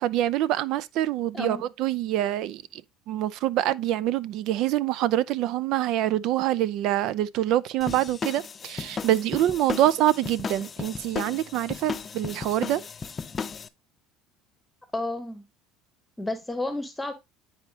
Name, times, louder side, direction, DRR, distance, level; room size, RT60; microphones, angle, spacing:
voice 1, 0.0-2.8 3.1-12.8, right 13 dB, 65° right, 0.4 m, -25 dB
sound 1, 7.8-13.7, left 5 dB, 30° left, 0.6 m, -35 dB
voice 2, 14.9-15.5 16.2-17.1, left 2 dB, 10° left, 1.0 m, -31 dB
9.8 x 4.3 x 2.8 m
supercardioid pair, 110°, 0 cm